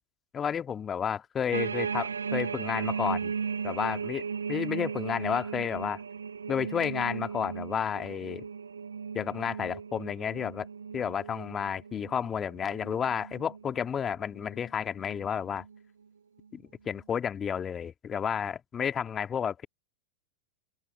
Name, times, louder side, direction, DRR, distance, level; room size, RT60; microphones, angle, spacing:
voice 1, 0.3-3.3 3.6-4.2 4.5-6.0 6.5-8.4 9.1-10.7 10.9-15.6 16.5-19.7, left 8 dB, 20° left, 2.1 m, -31 dB
sound 1, 1.5-13.9 14.4-14.6 15.0-15.8 16.4-16.5, right 6 dB, 70° right, 1.9 m, -36 dB
figure-of-eight pair, 90°, 0 cm